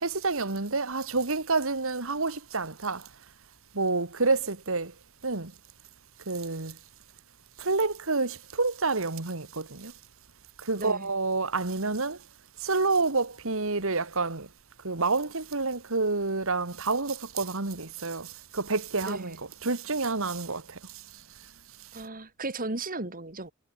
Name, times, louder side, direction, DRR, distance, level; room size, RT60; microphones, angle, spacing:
voice 1, 0.0-3.0 3.7-4.9 5.2-5.5 6.3-6.7 7.6-9.9 10.6-12.2 12.6-14.5 14.8-19.4 19.6-20.8, right 3 dB, 70° right, 2.2 m, -28 dB
voice 2, 19.0-19.3 21.9-23.5, right 2 dB, 40° right, 5.1 m, -35 dB
head